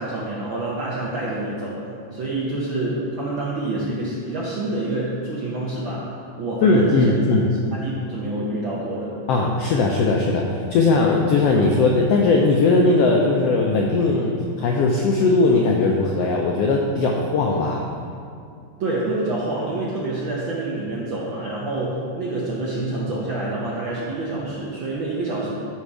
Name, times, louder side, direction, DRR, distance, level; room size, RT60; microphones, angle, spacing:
voice 1, 0.0-7.3 7.7-9.2 18.8-25.5, right 2 dB, 65° right, -6 dB, 1.2 m, -27 dB
voice 2, 6.6-7.5 9.3-10.4 10.7-17.9, left 3 dB, 90° left, 0 dB, 1.4 m, -19 dB
11.5 x 4.2 x 4.8 m, 2.5 s
omnidirectional pair, 3.5 m